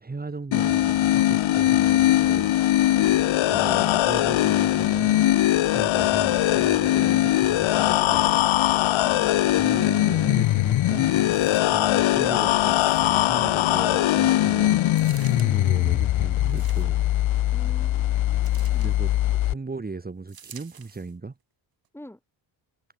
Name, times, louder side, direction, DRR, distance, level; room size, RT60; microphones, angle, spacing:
voice 1, 0.0-2.5 3.5-5.2 5.7-8.2 9.5-11.1 11.6-17.1 18.8-21.4, right 3 dB, 20° right, 3.6 m, -37 dB
sound 1, 0.5-19.5, left 14 dB, 70° left, 1.6 m, -21 dB
sound 2, 11.3-11.9 12.7-13.4 14.9-15.5 16.4-17.1 18.4-18.9 20.3-21.1 21.8-21.9, right 8 dB, 45° right, 6.1 m, -48 dB
voice 2, 17.5-18.9 21.9-22.2, left 1 dB, 5° left, 5.1 m, -44 dB
cardioid pair, 135°, 49 cm